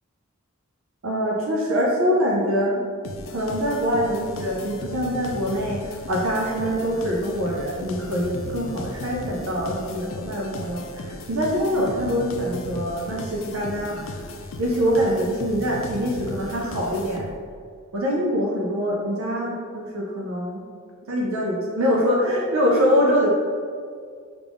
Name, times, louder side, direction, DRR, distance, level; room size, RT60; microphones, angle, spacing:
voice 1, 1.0-2.8 3.3-14.2 14.6-17.3 17.9-20.7 21.1-23.3, equal, 75° right, -3 dB, 0.5 m, -24 dB
sound 1, 3.0-17.6, left 2 dB, 65° left, 0.3 m, -36 dB
3.5 x 2.4 x 3.4 m, 2.1 s
head